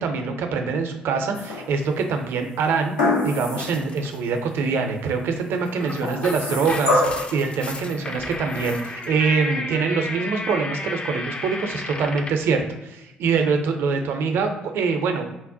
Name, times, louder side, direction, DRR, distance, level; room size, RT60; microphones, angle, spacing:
voice 1, 0.0-2.9 3.2-15.3, right 5 dB, 60° right, 5 dB, 0.4 m, -24 dB
sound 1, 1.3-2.0 3.0-3.8 4.3-4.4 6.0-7.4 8.5-8.6, left 2 dB, 90° left, 0.5 m, -24 dB
sound 2, 3.6-4.2 5.5-12.5, left 2 dB, 25° left, 0.3 m, -33 dB
3.9 x 2.1 x 2.5 m, 0.90 s
figure-of-eight pair, 45°, 5 cm